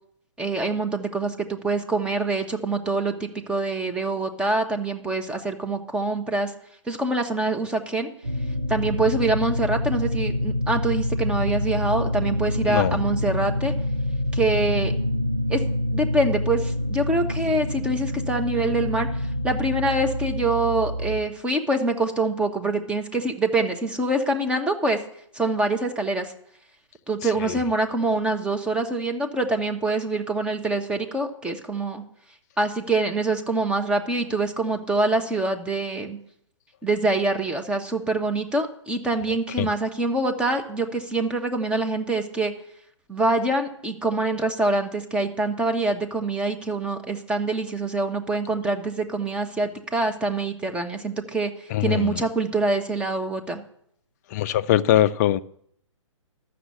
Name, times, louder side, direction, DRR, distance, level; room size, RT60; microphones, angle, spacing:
voice 1, 0.4-6.5 6.9-8.1 8.7-13.7 14.3-14.9 15.5-15.6 15.9-25.0 25.3-26.3 27.1-32.0 32.6-36.2 36.8-42.5 43.1-53.6, right 2 dB, 5° right, 1.0 m, -25 dB
sound 1, 8.2-21.2, left 1 dB, 70° right, 2.7 m, -26 dB
voice 2, 12.7-13.0 27.5-27.6 39.6-39.7 51.7-52.2 54.3-55.4, left 12 dB, 35° left, 0.5 m, -22 dB
13.0 x 6.5 x 8.3 m
figure-of-eight pair, 135°, 16 cm